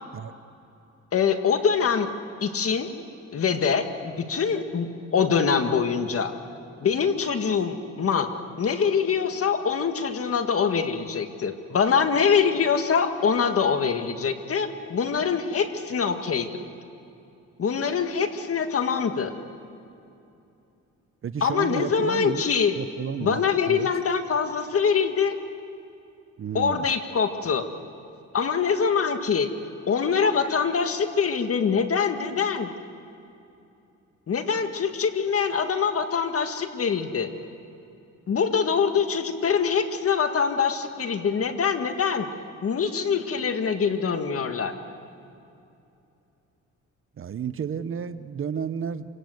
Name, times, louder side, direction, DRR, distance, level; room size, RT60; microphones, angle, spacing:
voice 1, 1.1-2.1 2.4-2.9 3.3-6.3 6.8-8.3 8.6-16.7 17.6-19.3 21.4-22.7 23.2-25.4 26.5-27.7 28.3-29.5 29.9-32.7 34.3-37.3 38.3-42.3 42.6-44.8, left 6 dB, 50° left, 7 dB, 1.9 m, -24 dB
voice 2, 21.2-22.5 22.7-23.9 26.4-26.9 47.2-49.1, right 7 dB, 45° right, 13 dB, 0.9 m, -32 dB
27.0 x 17.5 x 7.9 m, 2.7 s
cardioid pair, 90°, 30 cm